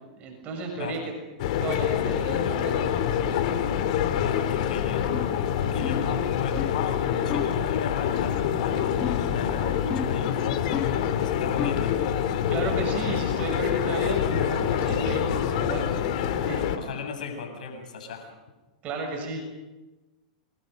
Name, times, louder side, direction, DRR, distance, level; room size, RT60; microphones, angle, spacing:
voice 1, 0.2-1.0 1.6-2.9 12.5-15.9 16.5-16.7 18.8-19.4, right 4 dB, 35° right, 2 dB, 6.9 m, -33 dB
sound 1, 1.4-16.8, left 9 dB, 65° left, 2.9 m, -26 dB
voice 2, 4.2-5.1 5.7-6.6 7.2-10.6 11.2-12.0 16.7-18.3, left 5 dB, 85° left, 4 dB, 7.8 m, -36 dB
sound 2, 5.1-5.4 5.8-6.1 6.6-6.8 7.3-7.6 9.0-9.4 9.9-10.3 10.7-11.1 11.6-11.9, left 8 dB, 25° left, 1.4 m, -33 dB
29.5 x 25.0 x 5.4 m, 1.1 s
hypercardioid pair, 135°, 4 cm